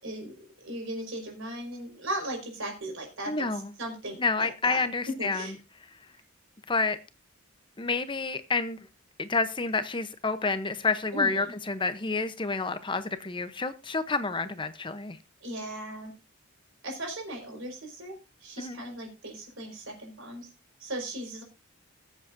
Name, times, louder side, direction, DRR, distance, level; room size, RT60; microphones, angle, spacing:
voice 1, 0.0-5.5 11.1-11.5 15.4-16.1 16.8-20.5 20.8-21.4, right 1 dB, 70° right, 5.0 m, -37 dB
voice 2, 3.3-3.7 4.2-5.5 6.7-7.0 7.8-8.8 9.2-15.2 18.6-18.8, left 4 dB, 25° left, 0.8 m, -29 dB
20.5 x 7.7 x 2.6 m
head